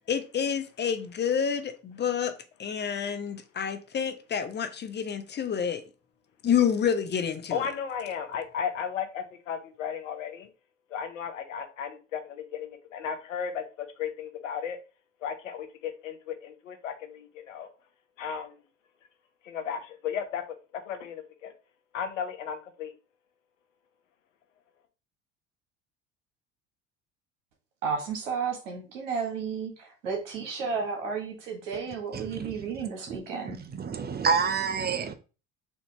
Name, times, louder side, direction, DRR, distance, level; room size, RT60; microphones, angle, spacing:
voice 1, 0.1-2.3 2.6-5.8 6.4-7.6, left 8 dB, 30° left, 0.6 m, -28 dB
voice 2, 7.5-10.5 10.9-14.8 15.2-17.7 18.2-18.6 19.4-20.4 20.7-21.5 21.9-22.9, left 7 dB, 85° left, 0.8 m, -35 dB
voice 3, 27.8-33.6, right 5 dB, 80° right, 1.6 m, -33 dB
voice 4, 32.1-32.7 33.6-35.1, right 5 dB, 25° right, 0.7 m, -28 dB
4.3 x 2.8 x 3.3 m
hypercardioid pair, 65°, 37 cm